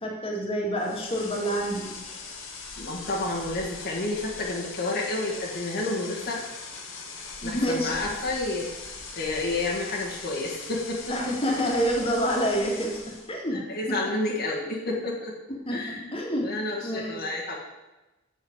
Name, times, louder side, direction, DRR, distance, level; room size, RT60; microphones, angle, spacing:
voice 1, 0.0-2.0 7.4-7.9 11.1-13.0 13.3-13.6 13.9-14.1 15.7-16.5 16.8-17.2, equal, 30° left, -1 dB, 2.2 m, -27 dB
sound 1, 0.8-13.3, left 4 dB, 75° left, 1.6 m, -40 dB
voice 2, 2.8-6.4 7.4-8.7 9.2-11.3 13.5-15.3 15.7-17.6, left 2 dB, 55° left, -4 dB, 1.7 m, -30 dB
7.7 x 6.5 x 8.0 m, 1.1 s
head